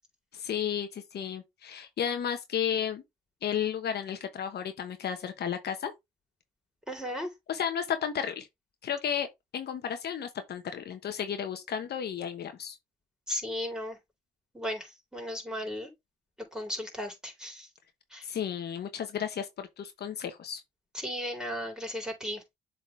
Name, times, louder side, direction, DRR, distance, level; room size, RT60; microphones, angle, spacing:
voice 1, 0.3-3.0 3.4-5.9 7.5-8.5 8.8-9.3 9.5-12.8 18.2-20.6, left 8 dB, 65° left, 1.2 m, -33 dB
voice 2, 6.9-7.3 13.3-14.0 14.5-15.9 16.5-17.7 18.1-18.2 20.9-22.4, equal, 5° right, 3.9 m, -35 dB
7.4 x 4.1 x 3.3 m
supercardioid pair, 60°, 19 cm